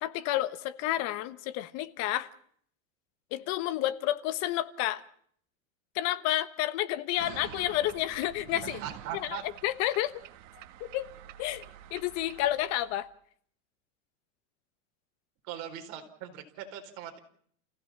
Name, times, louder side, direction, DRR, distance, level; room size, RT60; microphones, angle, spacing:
voice 1, 0.0-2.3 3.3-5.0 5.9-8.8 9.1-10.1 10.8-11.1 11.4-11.6 11.9-13.1, left 14 dB, 40° left, 1.3 m, -30 dB
sound 1, 7.2-13.0, right 12 dB, 70° right, 1.9 m, -47 dB
voice 2, 8.8-9.4 15.4-17.2, right 10 dB, 45° right, 4.3 m, -40 dB
29.0 x 16.0 x 7.4 m
supercardioid pair, 160°, 39 cm